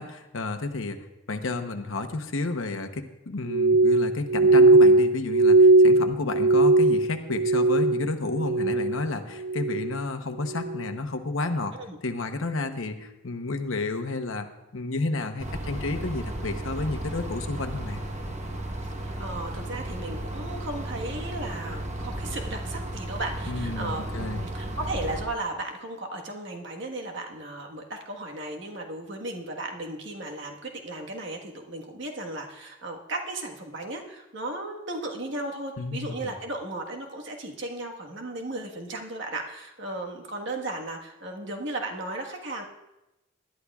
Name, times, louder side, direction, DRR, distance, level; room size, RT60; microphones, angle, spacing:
voice 1, 0.0-11.8 12.0-14.5 14.7-18.0 23.5-24.5 35.8-36.3, left 3 dB, 75° left, 7 dB, 0.9 m, -31 dB
Glass, 3.5-8.1 8.3-9.0 9.4-9.9 10.5-10.8, right 2 dB, 75° right, 0.5 m, -19 dB
sound 1, 15.4-25.2, right 1 dB, 35° right, 1.1 m, -34 dB
voice 2, 18.8-42.6, right 2 dB, 60° right, 1 dB, 1.5 m, -35 dB
19.5 x 11.5 x 2.4 m, 0.96 s
head